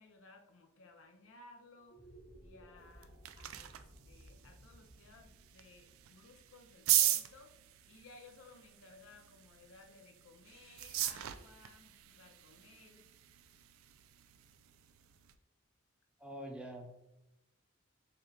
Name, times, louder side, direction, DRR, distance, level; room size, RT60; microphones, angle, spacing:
voice 1, 0.0-2.0 2.4-3.1 3.4-3.7 4.0-7.6 7.9-13.1, left 3 dB, 70° left, 4 dB, 0.6 m, -59 dB
sound 1, 1.8-8.2, right 1 dB, 25° left, 1.0 m, -59 dB
sound 2, 2.8-15.4, right 13 dB, 85° right, 0.3 m, -39 dB
voice 2, 16.2-16.9, equal, 5° right, 3 dB, 0.4 m, -45 dB
3.2 x 2.8 x 3.5 m, 0.92 s
head